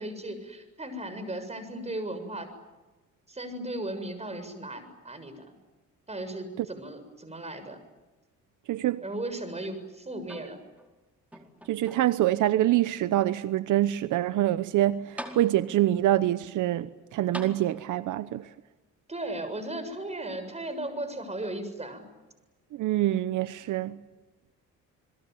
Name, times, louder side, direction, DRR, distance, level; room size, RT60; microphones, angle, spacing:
voice 1, 0.0-2.5 3.3-5.5 6.1-7.8 9.0-10.6 19.1-22.1, right 1 dB, 20° right, 7.1 m, -36 dB
voice 2, 8.7-9.0 11.7-18.5 22.7-24.0, right 14 dB, 80° right, 1.0 m, -25 dB
sound 1, 10.2-10.9 11.3-12.3 13.0-13.1 14.7-14.8 15.2-15.9 17.3-18.2 19.3-19.4, equal, 5° right, 4.6 m, -43 dB
29.0 x 21.5 x 9.5 m
cardioid pair, 90°, 30 cm